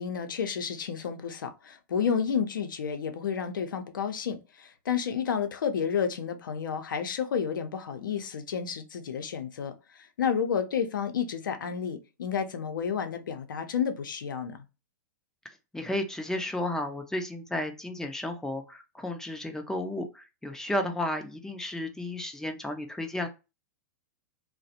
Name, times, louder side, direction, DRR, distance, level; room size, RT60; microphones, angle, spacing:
voice 1, 0.0-14.6, left 7 dB, 90° left, 0.5 m, -31 dB
voice 2, 15.7-23.3, left 1 dB, 5° left, 0.4 m, -33 dB
2.4 x 2.0 x 2.7 m
hypercardioid pair, 125°, 10 cm